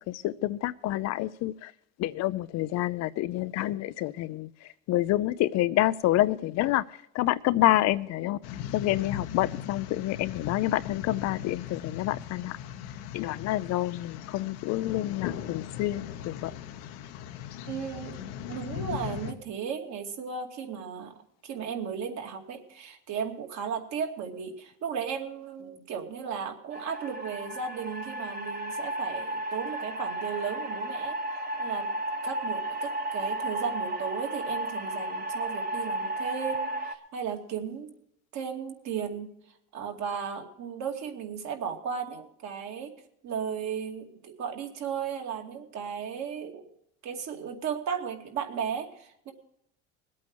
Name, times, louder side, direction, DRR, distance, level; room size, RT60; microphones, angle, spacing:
voice 1, 0.1-1.7 2.0-4.5 4.9-6.8 7.1-8.4 8.7-12.6 13.1-16.5, left 15 dB, 50° left, 15 dB, 0.5 m, -28 dB
sound 1, 8.4-19.3, left 10 dB, 80° left, 1.2 m, -38 dB
voice 2, 17.7-18.2 18.5-21.2 21.4-31.2 31.6-31.9 32.2-37.9 38.3-39.3 39.7-42.9 43.2-46.7 47.0-49.3, right 7 dB, 55° right, 2 dB, 2.4 m, -35 dB
sound 2, 26.7-36.9, right 1 dB, 30° right, 1.3 m, -33 dB
20.5 x 8.6 x 4.6 m, 0.72 s
supercardioid pair, 120°, 33 cm